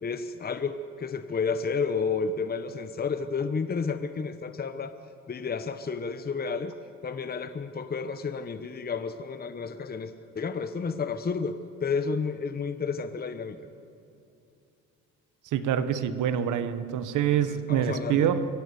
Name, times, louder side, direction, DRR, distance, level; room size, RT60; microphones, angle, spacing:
voice 1, 0.0-5.0 5.3-6.7 7.0-13.6 17.4-18.3, left 5 dB, 30° left, 9 dB, 0.9 m, -31 dB
voice 2, 15.5-18.5, right 9 dB, 85° right, 11 dB, 1.2 m, -26 dB
24.0 x 16.0 x 7.0 m, 2.7 s
cardioid pair, 90°, 30 cm